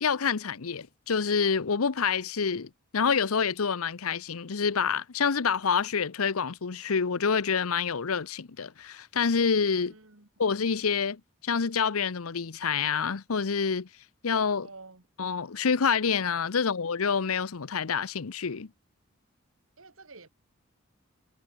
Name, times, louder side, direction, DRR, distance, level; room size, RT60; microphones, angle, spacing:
voice 1, 0.0-9.9 10.4-13.9 14.2-14.7 15.2-18.7, left 6 dB, 90° left, 0.8 m, -27 dB
voice 2, 9.9-10.3 14.6-15.0 19.8-20.3, right 3 dB, 75° right, 2.5 m, -49 dB
head